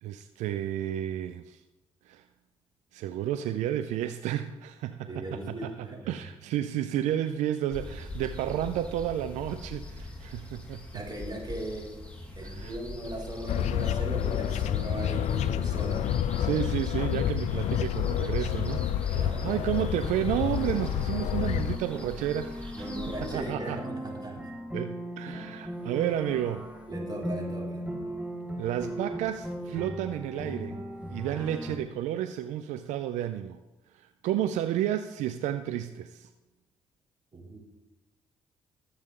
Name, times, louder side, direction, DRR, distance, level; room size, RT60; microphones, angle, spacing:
voice 1, 0.0-1.6 2.1-2.2 2.9-10.8 12.4-12.8 16.4-23.0 23.3-23.8 24.7-26.7 28.6-30.8 31.1-33.6 33.9-36.3, right 11 dB, 85° right, 10 dB, 0.5 m, -31 dB
voice 2, 5.1-6.1 10.9-11.9 12.4-16.0 19.1-19.8 22.7-24.4 25.2-25.4 26.9-27.8 37.3-37.6, right 1 dB, 35° right, -3 dB, 5.2 m, -38 dB
sound 1, 7.7-23.4, left 2 dB, 10° left, 3.8 m, -43 dB
sound 2, 13.5-21.8, left 10 dB, 75° left, 0.5 m, -29 dB
sound 3, 20.0-31.8, right 1 dB, 10° right, 2.0 m, -38 dB
22.5 x 7.9 x 3.8 m, 1.1 s
supercardioid pair, 60°, 12 cm